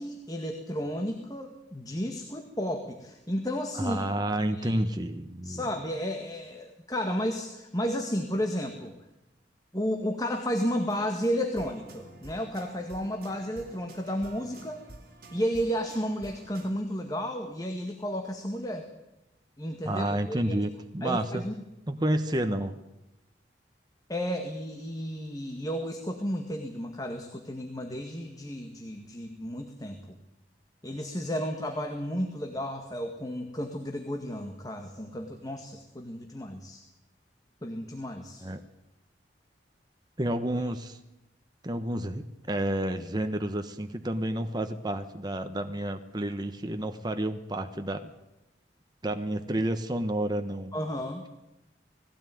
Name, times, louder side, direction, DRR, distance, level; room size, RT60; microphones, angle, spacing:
voice 1, 0.0-4.0 4.5-4.7 5.4-9.0 9.7-14.9 15.3-18.9 19.6-20.6 21.0-21.5 24.1-30.0 30.8-36.8 37.6-38.4 50.7-51.2, equal, 20° left, 4 dB, 1.8 m, -32 dB
voice 2, 3.8-5.6 19.8-21.4 21.9-22.8 38.4-38.6 40.2-41.0 41.6-48.1 49.0-50.7, right 1 dB, 25° right, 7 dB, 1.2 m, -30 dB
sound 1, 10.4-16.7, right 1 dB, 55° right, 4.1 m, -50 dB
19.5 x 16.5 x 9.3 m, 0.94 s
head